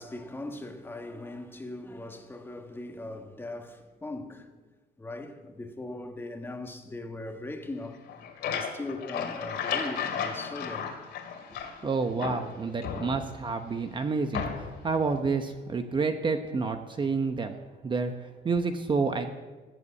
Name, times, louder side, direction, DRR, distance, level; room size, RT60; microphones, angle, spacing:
voice 1, 0.0-4.5 5.0-8.0 8.4-10.9, left 2 dB, 15° left, 1.4 m, -39 dB
sound 1, 7.9-11.9 12.2-13.5 14.3-14.9, left 7 dB, 85° left, 2.6 m, -34 dB
voice 2, 11.8-17.5 17.8-18.1 18.4-19.3, right 4 dB, 30° right, 0.9 m, -29 dB
18.0 x 8.3 x 8.5 m
cardioid pair, 145°, 17 cm